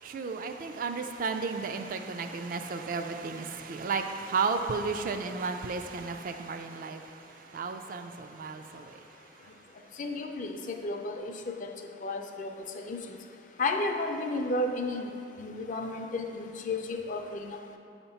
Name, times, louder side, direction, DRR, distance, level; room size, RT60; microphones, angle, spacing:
voice 1, 0.0-7.0 7.5-8.9, right 4 dB, 50° right, 6 dB, 0.3 m, -33 dB
voice 2, 10.0-11.3 11.6-13.2 13.6-15.1 15.4-17.6, left 2 dB, 45° left, 4 dB, 0.4 m, -33 dB
7.0 x 2.9 x 5.5 m, 2.7 s
head